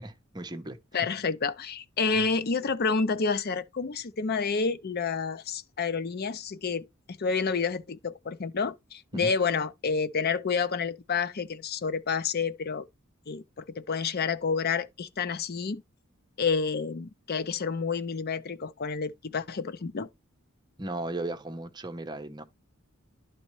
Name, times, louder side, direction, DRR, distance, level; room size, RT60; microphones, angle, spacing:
voice 1, 0.0-0.8 2.0-2.3 9.1-9.3 20.8-22.4, right 2 dB, 20° right, 0.8 m, -36 dB
voice 2, 0.9-12.9 13.3-15.8 16.4-20.1, left 5 dB, 45° left, 0.6 m, -29 dB
11.0 x 4.1 x 3.1 m
head